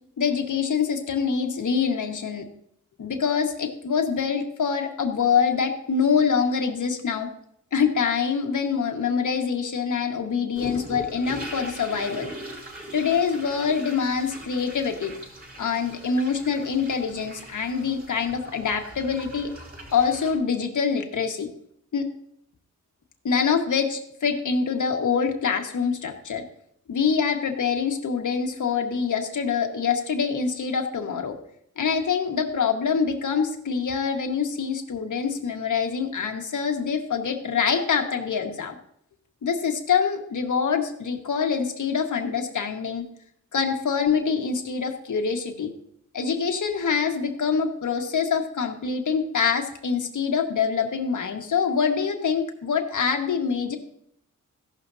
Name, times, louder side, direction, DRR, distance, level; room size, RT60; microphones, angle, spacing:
voice 1, 0.2-2.5 3.0-7.3 7.7-12.3 12.9-15.1 15.6-19.5 19.9-21.5 21.9-22.1 23.2-26.4 26.9-31.3 31.8-38.8 39.4-43.0 43.5-45.7 46.1-53.8, left 6 dB, 65° left, 3 dB, 1.6 m, -25 dB
sound 1, 10.5-20.3, right 1 dB, 30° right, 5.4 m, -40 dB
15.5 x 12.0 x 2.8 m, 0.72 s
wide cardioid pair, 145°, 32 cm